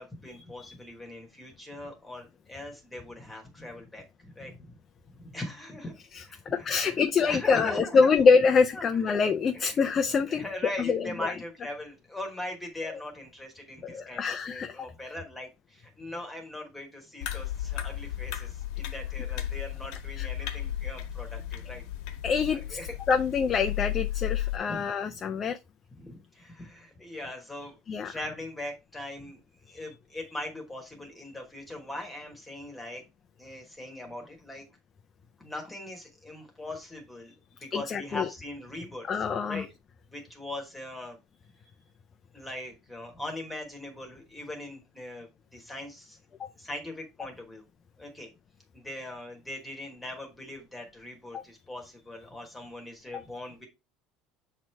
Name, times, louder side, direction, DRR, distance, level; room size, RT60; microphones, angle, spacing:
voice 1, 0.0-4.8 5.2-5.9 6.3-8.1 8.7-9.2 9.5-9.9 10.3-21.8 22.5-22.9 24.7-24.8 26.0-27.8 28.0-29.4 29.7-33.0 33.4-34.6 35.4-37.3 37.6-39.1 39.5-39.6 40.1-41.2 42.3-46.2 46.6-47.6 48.0-48.3 48.7-53.7, left 1 dB, 5° left, 1.2 m, -40 dB
voice 2, 6.5-10.4 10.8-11.3 13.8-14.9 20.2-20.3 22.2-22.8 23.1-25.6 27.9-28.1 29.7-29.8 37.7-38.3 39.1-39.6 46.4-46.5 51.3-51.4 53.1-53.2, left 5 dB, 25° left, 0.4 m, -25 dB
sound 1, 17.2-24.6, left 12 dB, 65° left, 1.1 m, -34 dB
7.4 x 3.1 x 4.4 m
cardioid pair, 160°, 0 cm